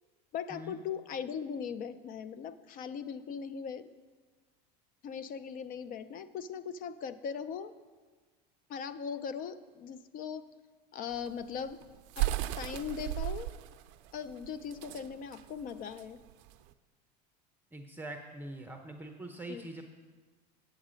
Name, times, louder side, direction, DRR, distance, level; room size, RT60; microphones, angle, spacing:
voice 1, 0.3-3.9 5.0-7.7 8.7-10.5 10.9-11.8 12.2-13.5 14.1-16.2 19.5-19.7, left 7 dB, 40° left, 13 dB, 0.5 m, -39 dB
sound 1, 11.1-16.7, right 16 dB, 60° right, 0.5 m, -36 dB
voice 2, 17.7-19.8, right 1 dB, 10° right, 4 dB, 0.6 m, -43 dB
8.5 x 7.3 x 5.1 m, 1.4 s
supercardioid pair, 105°, 21 cm